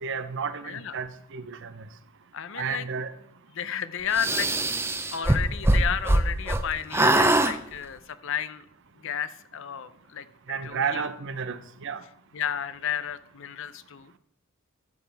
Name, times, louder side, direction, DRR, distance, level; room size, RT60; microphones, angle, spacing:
voice 1, 0.0-1.8 2.6-3.1 10.5-12.0, right 6 dB, 60° right, 12 dB, 0.7 m, -32 dB
voice 2, 2.3-2.8 3.5-4.5 5.1-8.6 9.0-10.3 10.6-11.0 12.3-14.1, left 8 dB, 65° left, 13 dB, 0.6 m, -32 dB
sound 1, 4.2-6.6 6.9-7.5, right 1 dB, 10° right, 0.6 m, -22 dB
13.0 x 7.3 x 3.4 m, 0.73 s
head